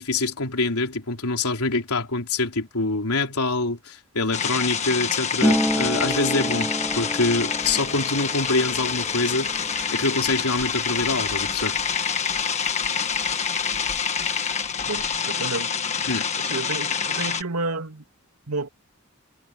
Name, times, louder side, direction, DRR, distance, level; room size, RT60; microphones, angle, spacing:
voice 1, 0.0-9.5 9.9-11.8 16.1-16.3, left 3 dB, 90° left, 3.8 m, -25 dB
sound 1, 4.3-17.4, left 6 dB, 30° left, 1.5 m, -27 dB
Harp, 5.4-12.9 13.1-14.3 14.5-15.2, equal, ahead, 1.2 m, -30 dB
voice 2, 14.7-16.1 16.4-18.0 18.5-18.7, right 3 dB, 90° right, 2.7 m, -31 dB
head